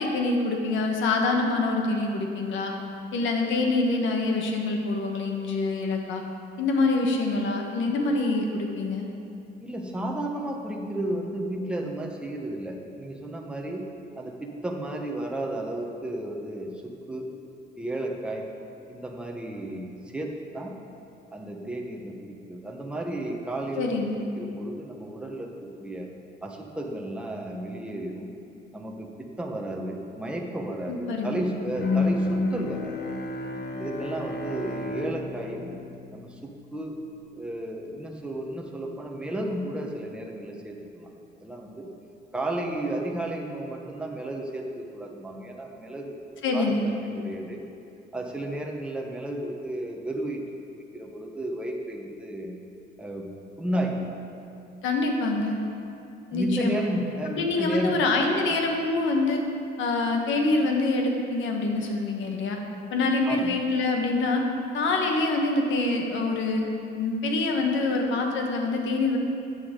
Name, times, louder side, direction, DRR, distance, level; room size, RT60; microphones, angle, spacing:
voice 1, 0.0-2.7 3.1-6.2 6.6-9.1 23.8-24.2 30.9-31.4 46.4-46.8 54.8-55.6 56.3-56.8 57.3-59.4 59.8-62.6 62.9-64.4 64.7-66.6 67.0-69.2, left 3 dB, 80° left, 2 dB, 1.4 m, -25 dB
voice 2, 9.6-13.8 14.2-17.3 17.8-18.4 18.9-20.7 21.3-24.0 24.4-26.1 26.4-28.3 28.7-33.0 33.8-35.7 36.1-36.9 37.3-41.1 41.4-41.9 42.3-47.6 48.1-50.4 50.9-52.6 53.0-53.3 53.6-54.1 56.3-57.9 63.2-63.6, right 1 dB, 5° right, 0 dB, 1.0 m, -33 dB
Bowed string instrument, 31.8-36.8, left 3 dB, 60° left, 1.1 m, -30 dB
13.0 x 8.1 x 3.8 m, 2.6 s
cardioid pair, 130°, 19 cm